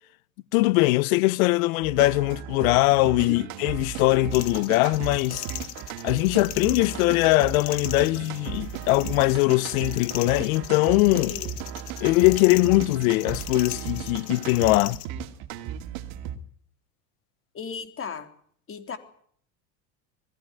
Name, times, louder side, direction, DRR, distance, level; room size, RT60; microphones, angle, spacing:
voice 1, 0.5-5.4 6.0-11.3 12.0-15.0, left 20 dB, 80° left, 1.1 m, -21 dB
sound 1, 1.8-16.4, right 9 dB, 65° right, 2.6 m, -36 dB
sound 2, 4.3-15.1, left 15 dB, 60° left, 2.1 m, -39 dB
voice 2, 17.5-18.3 18.7-19.0, left 6 dB, 30° left, 3.8 m, -35 dB
21.5 x 16.5 x 9.2 m
supercardioid pair, 110°, 42 cm